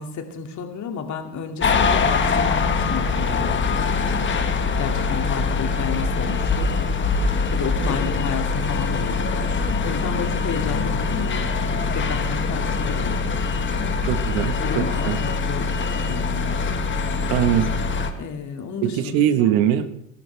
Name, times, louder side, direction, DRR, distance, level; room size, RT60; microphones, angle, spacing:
voice 1, 0.0-4.3 4.8-6.8 7.5-13.2 14.6-16.6 18.2-19.5, left 6 dB, 50° left, 4 dB, 2.5 m, -32 dB
sound 1, 1.6-18.1, left 4 dB, 30° left, 1.6 m, -23 dB
voice 2, 14.0-15.2 17.3-17.7 18.8-19.9, right 11 dB, 75° right, 10 dB, 1.5 m, -21 dB
23.5 x 12.0 x 3.5 m, 0.74 s
supercardioid pair, 100°, 37 cm